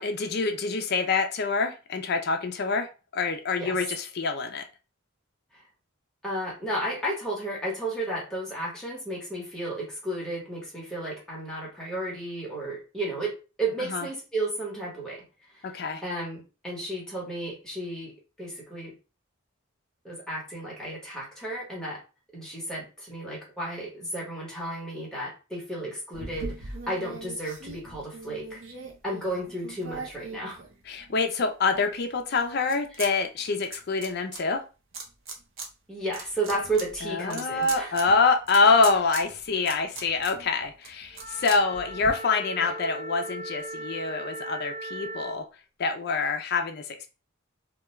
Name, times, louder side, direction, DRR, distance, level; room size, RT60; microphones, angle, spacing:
voice 1, 0.0-2.9 3.1-4.7 13.9-14.0 15.6-16.0 30.9-34.6 37.0-45.5 45.8-47.1, left 4 dB, 50° left, 6 dB, 0.4 m, -26 dB
voice 2, 6.2-13.3 13.6-15.7 16.0-18.1 18.4-18.9 20.0-22.0 22.3-28.6 29.0-30.6 35.9-38.0 42.6-42.7, right 1 dB, 5° left, -5 dB, 1.0 m, -33 dB
sound 1, 26.1-31.2 31.7-33.1 33.3-34.4 34.9-35.7 36.0-42.1, right 3 dB, 65° right, 0.6 m, -41 dB
Wind instrument woodwind instrument, 41.1-45.4, right 1 dB, 30° right, 0.3 m, -38 dB
2.2 x 2.2 x 3.0 m, 0.32 s
head